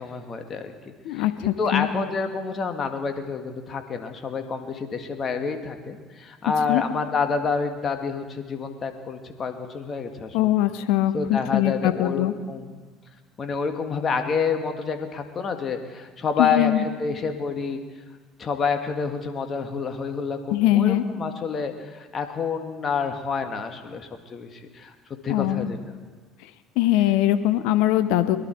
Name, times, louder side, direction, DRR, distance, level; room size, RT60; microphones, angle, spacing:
voice 1, 0.0-10.5 11.1-12.7 13.4-17.8 18.4-24.9 25.2-25.8, left 5 dB, 40° left, 5 dB, 1.8 m, -28 dB
voice 2, 1.0-1.9 6.7-6.8 10.3-12.3 16.4-16.8 20.5-21.0 25.3-25.7 26.8-28.4, left 13 dB, 70° left, 11 dB, 0.9 m, -21 dB
22.5 x 11.5 x 4.5 m, 1.4 s
hypercardioid pair, 65°, 0 cm